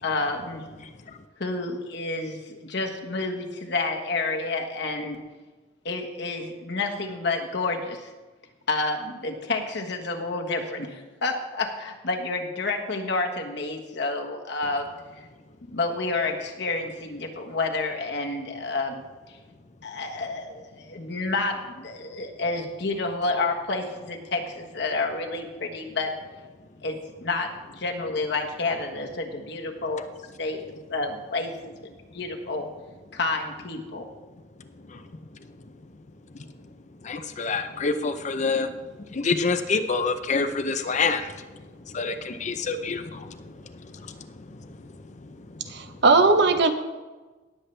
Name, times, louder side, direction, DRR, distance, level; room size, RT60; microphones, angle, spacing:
voice 1, 0.0-0.6 1.4-5.2 5.8-8.1 8.7-14.9 15.2-15.3 15.7-19.0 19.8-26.1 26.8-30.0 30.4-30.6 30.9-32.7 33.1-34.1, left 3 dB, 65° left, 2 dB, 1.4 m, -29 dB
voice 2, 37.0-38.7 39.1-41.3 41.9-43.6 43.8-44.7 45.2-45.3 45.6-45.7, left 4 dB, 40° left, 9 dB, 0.6 m, -27 dB
voice 3, 45.7-46.7, right 3 dB, 65° right, 8 dB, 0.9 m, -18 dB
18.0 x 7.5 x 3.3 m, 1.2 s
head